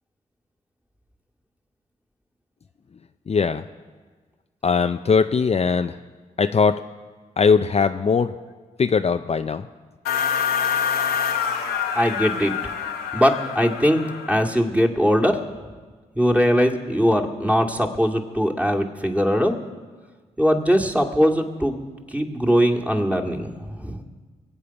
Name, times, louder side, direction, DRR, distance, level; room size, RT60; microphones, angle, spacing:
voice 1, 3.3-3.6 4.6-5.9 6.4-6.8 7.4-8.3 8.8-9.6, left 5 dB, 40° left, 8 dB, 0.6 m, -20 dB
sound 1, 10.0-14.6, left 7 dB, 90° left, 1.4 m, -26 dB
voice 2, 11.9-12.5 13.1-15.4 16.2-19.6 20.4-21.8 22.1-24.0, equal, 10° right, 2 dB, 2.3 m, -21 dB
22.0 x 8.4 x 5.9 m, 1.4 s
supercardioid pair, 45°, 16 cm